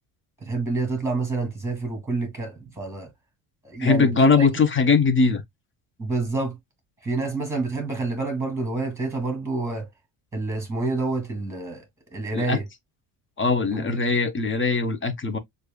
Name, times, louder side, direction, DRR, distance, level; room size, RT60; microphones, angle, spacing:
voice 1, 0.4-3.1 3.6-4.5 6.0-6.6 7.0-9.9 10.3-11.8 12.1-12.7 13.7-14.1, right 3 dB, 5° right, 2.5 m, -28 dB
voice 2, 3.8-5.4 12.3-12.6 13.4-15.4, left 4 dB, 25° left, 0.8 m, -20 dB
6.4 x 2.6 x 2.2 m
cardioid pair, 105°, 47 cm